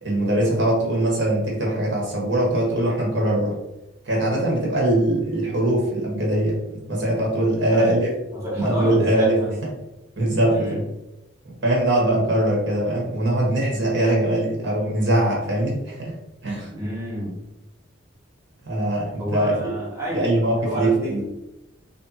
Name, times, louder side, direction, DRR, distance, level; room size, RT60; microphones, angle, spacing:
voice 1, 0.0-3.5 4.0-8.1 8.6-9.4 10.2-10.8 11.6-16.1 16.4-16.7 18.6-19.7 20.1-21.2, right 1 dB, 60° right, -3 dB, 1.3 m, -22 dB
voice 2, 7.7-8.0 8.3-9.6 10.5-10.8 16.7-17.4 19.2-20.3 20.6-21.2, equal, 15° right, -6 dB, 1.2 m, -29 dB
3.3 x 2.8 x 4.2 m, 0.93 s
head